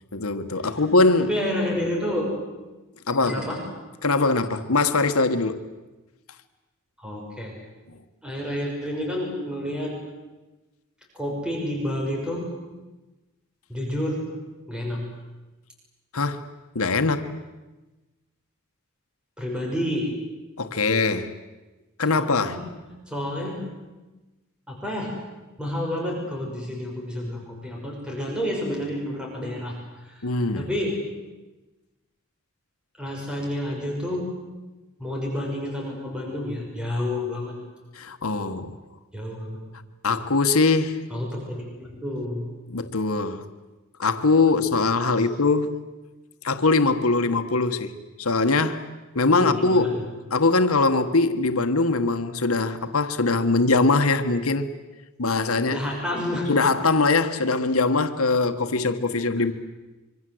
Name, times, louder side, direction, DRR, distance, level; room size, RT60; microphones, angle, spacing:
voice 1, 0.1-1.3 3.1-3.4 4.0-5.7 7.9-8.0 16.1-16.5 16.7-17.4 20.6-21.3 22.0-22.6 30.2-30.7 37.9-38.7 40.0-41.0 42.7-43.4 44.0-45.8 46.4-48.9 49.1-50.0 50.3-54.7 55.2-55.8 56.5-59.5, left 3 dB, 90° left, 1.4 m, -22 dB
voice 2, 1.2-2.3 3.2-3.6 7.0-7.5 8.2-10.0 11.1-12.5 13.7-14.3 14.7-15.1 19.4-20.1 22.2-22.6 23.1-23.6 24.7-25.1 25.6-29.8 30.0-30.3 30.6-31.0 33.0-34.3 35.0-37.5 39.1-39.6 41.1-42.5 45.2-45.3 49.4-49.9 55.7-56.5, left 1 dB, 5° right, 6.0 m, -29 dB
26.0 x 24.5 x 7.9 m
head